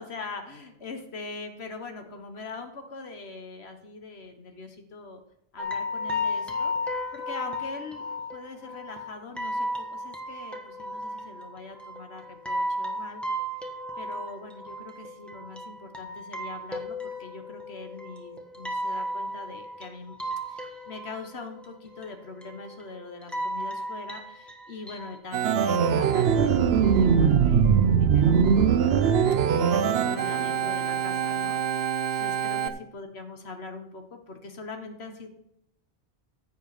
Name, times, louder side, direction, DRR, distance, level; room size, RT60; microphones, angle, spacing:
voice 1, 0.0-5.2 5.5-6.7 7.1-8.0 8.3-13.2 14.0-20.2 20.5-29.1 29.6-35.3, left 3 dB, 85° left, 6 dB, 1.5 m, -42 dB
sound 1, 5.6-25.2, left 1 dB, ahead, 1.4 m, -34 dB
Organ, 25.3-32.7, right 7 dB, 75° right, 0.9 m, -22 dB
15.5 x 5.5 x 4.9 m, 0.80 s
omnidirectional pair, 1.1 m